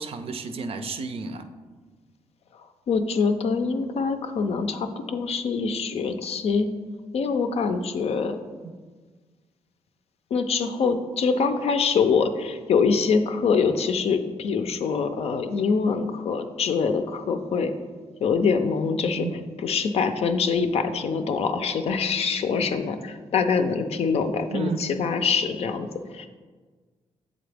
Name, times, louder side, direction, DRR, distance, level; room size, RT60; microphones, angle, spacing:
voice 1, 0.0-1.4 19.1-19.4 24.5-24.9, right 4 dB, 55° right, 9 dB, 0.5 m, -31 dB
voice 2, 2.9-6.7 7.1-8.4 10.3-17.7 18.2-19.2 19.6-25.9 26.1-26.3, left 5 dB, 65° left, 8 dB, 0.5 m, -24 dB
7.4 x 3.8 x 3.4 m, 1.4 s
cardioid pair, 80°, 11 cm